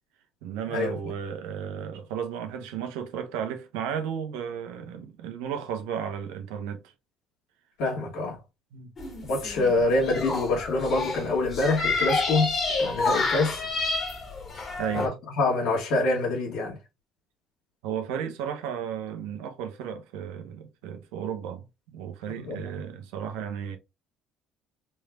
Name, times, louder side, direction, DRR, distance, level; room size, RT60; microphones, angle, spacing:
voice 1, 0.4-6.8 8.7-8.9 14.8-15.1 17.8-21.6 21.9-23.8, right 8 dB, 85° right, 0.8 m, -34 dB
voice 2, 7.8-8.4 9.3-13.6 14.9-16.8 22.4-22.6, left 2 dB, 75° left, 2.0 m, -26 dB
sound 1, 9.0-15.1, left 3 dB, 45° left, 1.8 m, -29 dB
4.3 x 3.4 x 2.3 m
supercardioid pair, 75°, 0 cm